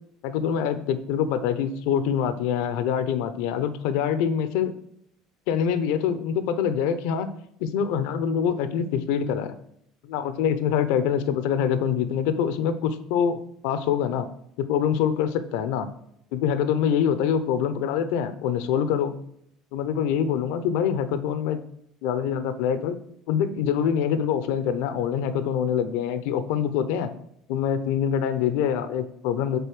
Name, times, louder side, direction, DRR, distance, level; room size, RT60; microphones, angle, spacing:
voice 1, 0.2-4.7 5.5-7.3 7.6-9.5 10.0-14.3 14.7-15.9 16.3-19.1 19.7-21.6 22.0-23.0 23.3-27.1 27.5-29.6, left 8 dB, 75° left, 11 dB, 0.6 m, -25 dB
6.8 x 4.1 x 6.2 m, 0.72 s
supercardioid pair, 85°, 0 cm